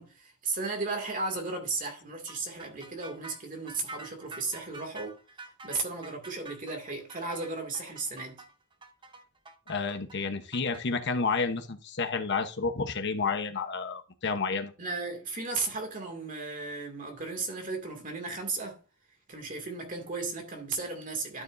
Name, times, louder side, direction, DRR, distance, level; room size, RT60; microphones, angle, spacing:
voice 1, 0.0-5.2 5.6-8.4 14.8-18.8 19.3-21.4, right 3 dB, 40° right, 2.3 m, -35 dB
sound 1, 2.3-10.8, right 2 dB, 25° right, 0.8 m, -47 dB
voice 2, 9.7-14.7, left 4 dB, 55° left, 1.0 m, -30 dB
12.5 x 7.0 x 2.6 m
head